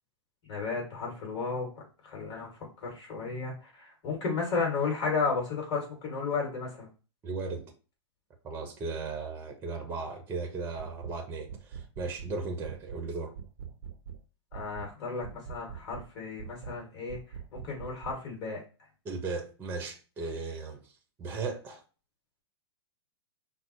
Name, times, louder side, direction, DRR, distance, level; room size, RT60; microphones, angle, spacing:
voice 1, 0.4-2.5 2.8-6.9 14.5-17.2 17.5-18.6, left 4 dB, 35° left, 2.4 m, -33 dB
voice 2, 7.2-7.7 8.4-13.3 19.0-20.8 21.2-21.8, right 4 dB, 15° right, 0.8 m, -36 dB
sound 1, 10.8-11.2 11.5-12.4 12.7-13.1 13.4-14.2 14.5-14.9 15.2-16.1 16.4-16.8 17.1-18.2, right 7 dB, 55° right, 0.7 m, -43 dB
5.5 x 2.0 x 4.4 m
hypercardioid pair, 145°, 14 cm